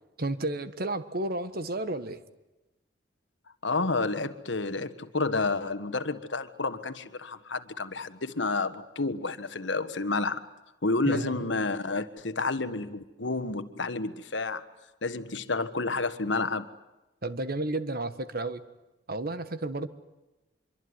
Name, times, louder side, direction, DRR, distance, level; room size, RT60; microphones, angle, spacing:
voice 1, 0.2-2.2 11.0-11.4 17.2-18.6 19.1-19.9, right 2 dB, 55° right, 11 dB, 1.5 m, -32 dB
voice 2, 3.6-10.4 10.8-14.6 15.0-16.6, left 3 dB, 75° left, 11 dB, 1.5 m, -30 dB
25.0 x 23.5 x 9.7 m, 1.0 s
head